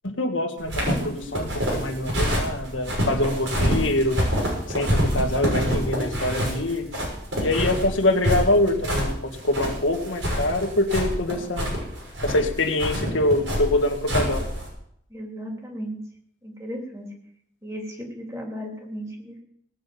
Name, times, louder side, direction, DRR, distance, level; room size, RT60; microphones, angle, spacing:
voice 1, 0.0-4.2 4.7-6.9 7.4-11.7 12.2-14.5, left 1 dB, 85° left, 4 dB, 1.9 m, -24 dB
sound 1, 0.6-14.7, equal, 75° right, 6.3 m, -26 dB
voice 2, 15.1-16.0 16.4-17.1 17.6-19.4, equal, 15° right, 0 dB, 3.1 m, -35 dB
18.0 x 6.5 x 8.6 m, 0.71 s
head